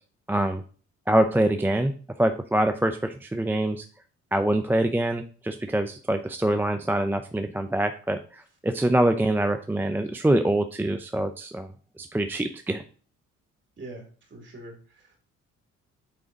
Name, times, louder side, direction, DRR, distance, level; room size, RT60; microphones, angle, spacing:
voice 1, 0.3-0.6 1.1-1.9 2.2-3.9 4.3-11.7 12.0-12.8, right 1 dB, 5° right, 7 dB, 0.5 m, -25 dB
voice 2, 13.8-15.2, right 2 dB, 40° right, 1 dB, 2.8 m, -43 dB
8.7 x 3.7 x 3.9 m, 0.40 s
cardioid pair, 90°, 30 cm